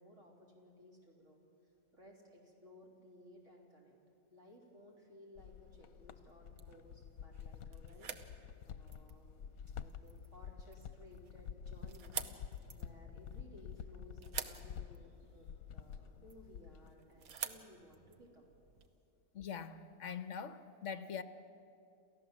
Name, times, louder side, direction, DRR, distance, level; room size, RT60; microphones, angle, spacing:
voice 1, 0.0-1.4 1.9-4.0 4.3-12.3 12.7-18.5, left 1 dB, 60° right, -2 dB, 3.8 m, -59 dB
sound 1, 5.4-17.0, left 8 dB, 90° left, 1.1 m, -49 dB
sound 2, 6.0-18.9, right 7 dB, 85° right, 1.5 m, -50 dB
voice 2, 19.3-21.2, left 7 dB, 65° left, 11 dB, 1.3 m, -43 dB
28.5 x 14.5 x 7.4 m, 2.6 s
omnidirectional pair, 1.5 m